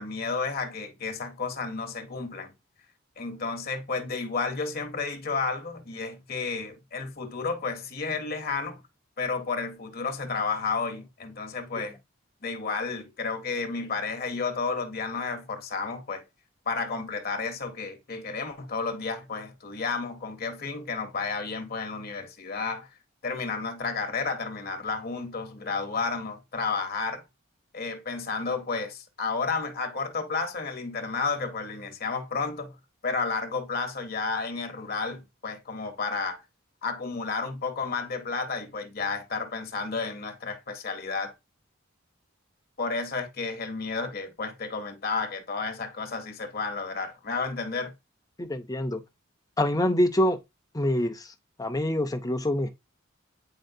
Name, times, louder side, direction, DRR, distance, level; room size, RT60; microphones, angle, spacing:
voice 1, 0.0-2.5 3.2-8.8 9.2-12.0 12.4-16.2 16.7-22.9 23.2-27.2 27.7-32.8 33.0-36.4 36.8-41.3 42.8-47.9, left 4 dB, 45° left, 0.8 m, -32 dB
voice 2, 48.4-49.0 49.6-50.4 50.7-51.3 51.6-52.7, left 1 dB, 15° left, 0.6 m, -25 dB
8.9 x 4.3 x 2.7 m
head